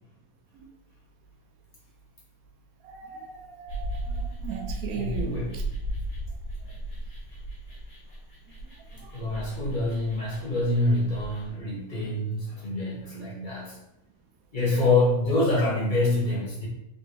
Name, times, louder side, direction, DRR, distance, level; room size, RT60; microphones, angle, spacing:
voice 1, 2.8-5.6 6.6-6.7 8.9-9.5, right 7 dB, 75° right, 3 dB, 1.0 m, -39 dB
sound 1, 3.7-11.5, right 1 dB, 85° left, 1.7 m, -35 dB
voice 2, 4.9-5.5 9.1-13.7 14.5-16.7, left 2 dB, 35° left, -5 dB, 1.4 m, -26 dB
3.9 x 3.6 x 2.8 m, 0.88 s
omnidirectional pair, 1.6 m